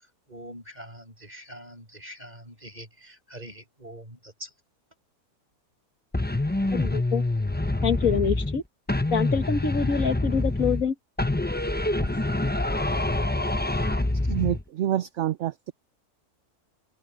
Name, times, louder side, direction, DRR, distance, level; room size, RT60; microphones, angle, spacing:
voice 1, 0.3-4.5, right 1 dB, 25° right, 6.6 m, -44 dB
sound 1, 6.1-8.6 8.9-10.9 11.2-14.6, left 2 dB, 15° left, 0.4 m, -26 dB
voice 2, 6.7-7.3 7.8-8.6 9.1-10.9, left 6 dB, 65° left, 1.8 m, -26 dB
voice 3, 14.3-15.7, right 12 dB, 60° right, 0.9 m, -27 dB
omnidirectional pair, 1.6 m